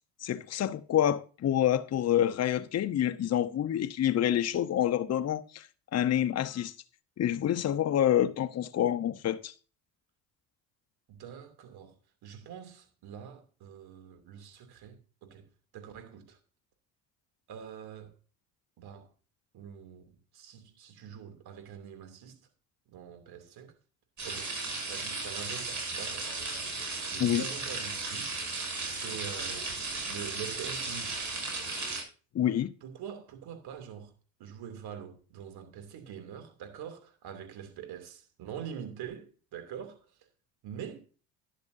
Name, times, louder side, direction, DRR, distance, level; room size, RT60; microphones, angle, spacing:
voice 1, 0.2-5.7 5.9-6.7 7.2-9.5 27.2-27.5 32.3-32.7, left 11 dB, 40° left, 0.9 m, -27 dB
voice 2, 11.1-11.9 12.2-15.4 15.7-16.4 17.5-18.1 18.8-19.1 19.5-20.0 20.3-22.4 22.9-23.7 24.2-24.5 24.9-26.3 27.1-28.3 28.8-31.2 31.5-31.6 32.8-34.1 34.4-40.1 40.6-41.0, right 8 dB, 65° right, 2.8 m, -44 dB
sound 1, 24.2-32.0, right 3 dB, 45° right, 6.3 m, -35 dB
12.0 x 11.0 x 2.6 m
hypercardioid pair, 65°, 41 cm